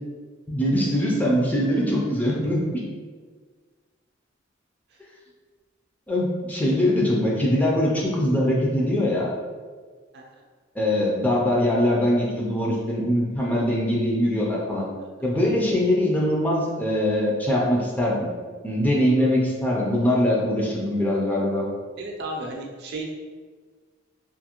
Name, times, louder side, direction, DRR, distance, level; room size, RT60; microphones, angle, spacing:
voice 1, 0.5-2.6 6.1-9.3 10.8-14.9 15.2-18.3 18.6-21.7, left 1 dB, 10° left, -4 dB, 0.4 m, -22 dB
voice 2, 22.0-23.0, right 2 dB, 60° right, 0 dB, 0.5 m, -33 dB
2.6 x 2.5 x 2.8 m, 1.5 s
head